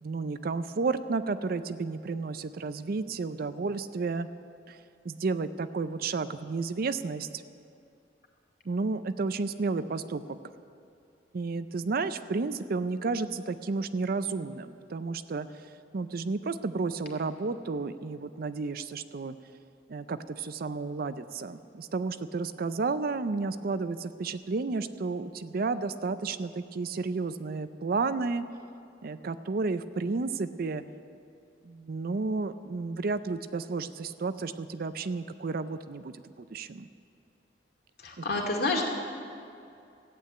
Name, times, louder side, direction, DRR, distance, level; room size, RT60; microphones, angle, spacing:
voice 1, 0.0-4.3 4.7-4.8 5.0-7.4 8.7-10.4 11.3-15.6 15.9-19.4 19.9-28.4 29.0-30.8 31.6-36.9 38.2-38.3, right 4 dB, 55° right, 12 dB, 0.5 m, -32 dB
voice 2, 38.0-38.9, left 2 dB, 55° left, 0 dB, 2.3 m, -28 dB
14.5 x 8.6 x 8.8 m, 2.6 s
head